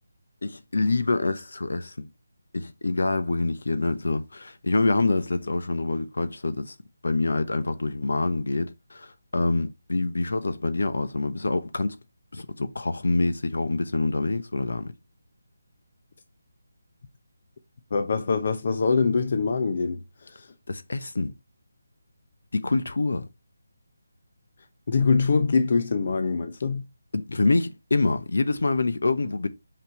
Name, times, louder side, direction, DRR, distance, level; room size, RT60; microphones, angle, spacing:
voice 1, 0.4-2.1 2.5-6.7 7.0-11.9 12.3-14.9 20.7-21.3 22.5-23.3 27.1-29.5, left 3 dB, 70° left, 0.9 m, -26 dB
voice 2, 17.9-20.5 24.9-26.8, left 4 dB, 50° left, 0.7 m, -24 dB
5.7 x 5.3 x 3.2 m
figure-of-eight pair, 160°, 0 cm